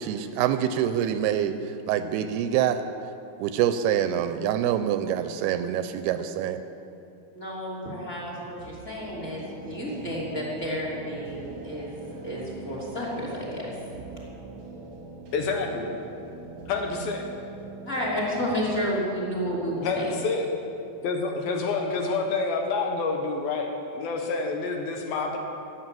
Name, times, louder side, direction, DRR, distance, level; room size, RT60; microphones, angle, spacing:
voice 1, 0.0-1.6 1.9-2.8 3.4-6.6, right 10 dB, 80° right, 10 dB, 2.4 m, -25 dB
voice 2, 7.3-13.6 17.9-20.1, equal, 20° left, -4 dB, 2.5 m, -31 dB
sound 1, 8.6-22.3, right 3 dB, 50° right, 1.6 m, -43 dB
voice 3, 15.3-15.9 16.7-17.2 19.8-20.4 21.0-25.4, left 4 dB, 75° left, 2 dB, 2.6 m, -28 dB
14.0 x 9.0 x 7.5 m, 2.7 s
omnidirectional pair, 4.7 m